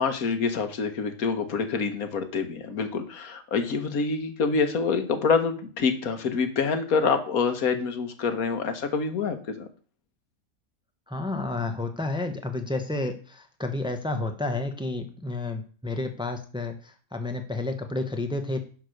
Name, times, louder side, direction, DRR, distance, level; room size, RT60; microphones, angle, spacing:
voice 1, 0.0-9.7, left 5 dB, 85° left, 8 dB, 1.7 m, -26 dB
voice 2, 11.1-18.6, left 2 dB, 5° right, 6 dB, 0.9 m, -31 dB
10.0 x 4.6 x 6.5 m, 0.40 s
omnidirectional pair, 1.5 m